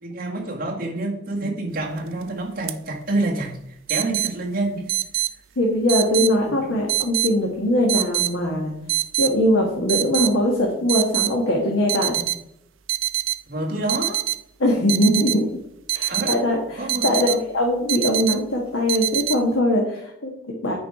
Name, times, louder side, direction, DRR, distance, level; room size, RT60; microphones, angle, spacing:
voice 1, 0.0-5.2 6.6-6.7 13.5-14.2 15.2-15.3 16.1-16.4 16.8-17.4, right 2 dB, 45° right, -1 dB, 1.7 m, -28 dB
sound 1, 2.0-2.2 2.7-2.8 3.9-4.3 4.9-5.3 5.9-6.3 6.9-7.3 7.9-8.3 8.9-9.3 9.9-10.3 10.9-11.3 11.9-12.4 12.9-13.4 13.9-14.4 14.9-15.4 15.9-16.4 16.9-17.4 17.9-18.4 18.9-19.4, right 15 dB, 80° right, 0.5 m, -24 dB
voice 2, 5.6-8.7 9.2-12.2 14.6-15.5 15.9-20.7, left 1 dB, 85° left, -1 dB, 1.6 m, -21 dB
9.1 x 4.8 x 4.8 m, 0.78 s
head